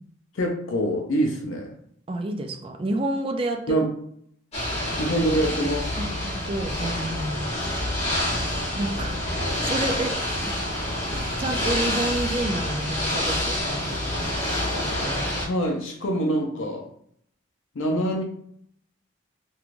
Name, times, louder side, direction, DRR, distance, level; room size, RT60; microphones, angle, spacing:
voice 1, 0.3-1.7 3.7-3.9 5.0-6.0 15.4-16.9 17.8-18.2, right 1 dB, 85° left, 1 dB, 0.5 m, -25 dB
voice 2, 2.1-3.8 6.0-7.4 8.8-9.2 9.6-10.6 11.1-14.3 14.8-15.4, right 2 dB, 30° right, 5 dB, 0.3 m, -30 dB
Ocean / Boat Water vehicle, 4.5-15.4, left 1 dB, 35° left, 1.0 m, -27 dB
3.0 x 2.2 x 2.5 m, 0.67 s
head